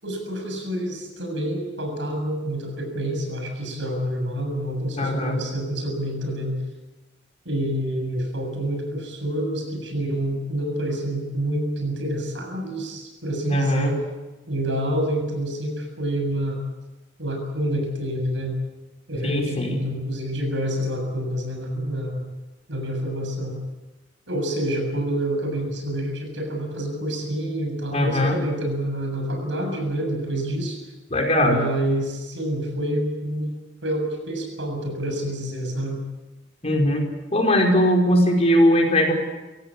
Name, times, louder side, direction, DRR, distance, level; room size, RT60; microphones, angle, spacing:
voice 1, 0.0-6.6 7.5-14.0 14.5-16.6 17.2-18.5 19.1-22.3 22.7-23.6 24.3-30.8 31.4-33.5 33.8-36.0, right 1 dB, 80° right, 4 dB, 7.3 m, -27 dB
voice 2, 5.0-5.4 13.5-13.9 19.2-19.8 27.9-28.4 31.1-31.6 36.6-37.0 37.3-39.1, left 1 dB, 35° left, 2 dB, 5.1 m, -20 dB
25.0 x 17.0 x 8.5 m, 1.1 s
head